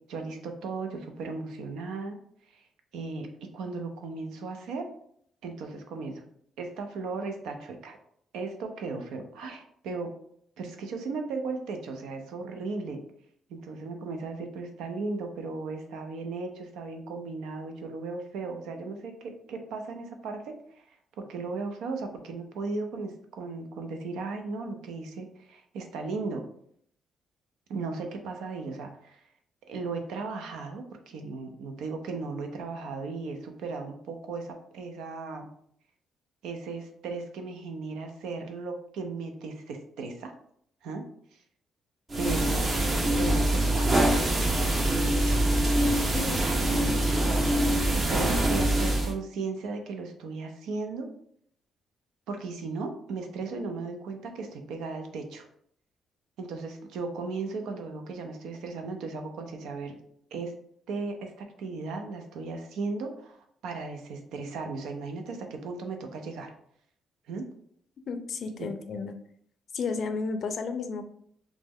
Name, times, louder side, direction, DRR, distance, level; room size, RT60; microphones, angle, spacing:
voice 1, 0.1-2.2 2.5-2.6 2.9-3.3 3.5-4.9 5.4-6.2 6.6-8.0 8.3-10.1 10.6-13.0 13.5-20.8 21.2-26.4 27.7-29.2 29.7-35.5 36.4-40.3 40.8-41.0 42.2-45.6 46.2-51.1 52.3-55.5 56.4-60.0 60.3-60.5 60.9-66.5 67.3-67.4 68.6-68.7, right 3 dB, 85° right, 5 dB, 0.5 m, -36 dB
sound 1, 42.1-49.1, right 1 dB, 35° right, 0.7 m, -24 dB
voice 2, 46.6-47.0 68.1-69.1 69.7-71.0, left 4 dB, 55° left, 8 dB, 0.4 m, -33 dB
3.1 x 2.0 x 3.5 m, 0.66 s
cardioid pair, 90°, 0 cm